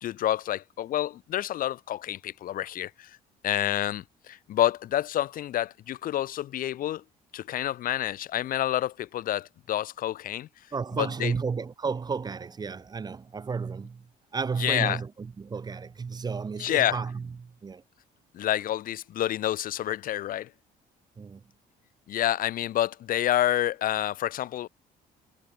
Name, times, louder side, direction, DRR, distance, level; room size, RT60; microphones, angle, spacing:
voice 1, 0.0-3.1 3.4-7.0 7.3-10.5 11.0-11.3 14.6-15.0 16.6-17.0 18.3-20.5 22.1-24.7, left 12 dB, 55° left, 0.6 m, -28 dB
voice 2, 10.7-14.1 14.3-17.8 21.2-21.4, right 5 dB, 25° right, 0.8 m, -32 dB
cardioid pair, 110°, 17 cm